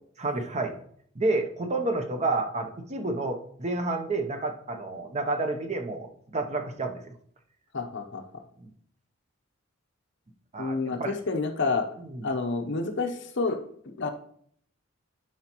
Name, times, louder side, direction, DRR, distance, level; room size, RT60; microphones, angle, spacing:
voice 1, 0.2-0.8 1.2-7.0 8.6-8.7 10.5-11.1 12.0-12.3, right 2 dB, 35° right, 5 dB, 0.8 m, -30 dB
voice 2, 7.7-8.2 10.6-11.8 12.2-14.1, left 3 dB, 60° left, 5 dB, 0.8 m, -29 dB
11.5 x 4.7 x 3.0 m, 0.63 s
head